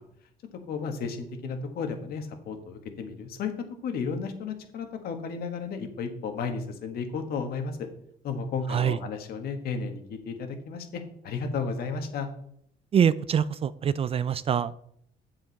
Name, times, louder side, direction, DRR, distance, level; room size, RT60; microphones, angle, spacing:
voice 1, 0.7-3.5 3.8-7.8 8.2-12.3, left 5 dB, 65° left, 6 dB, 1.5 m, -33 dB
voice 2, 8.7-9.0 12.9-14.7, right 8 dB, 35° right, 17 dB, 0.3 m, -24 dB
7.8 x 7.3 x 4.1 m, 0.69 s
cardioid pair, 110°, 17 cm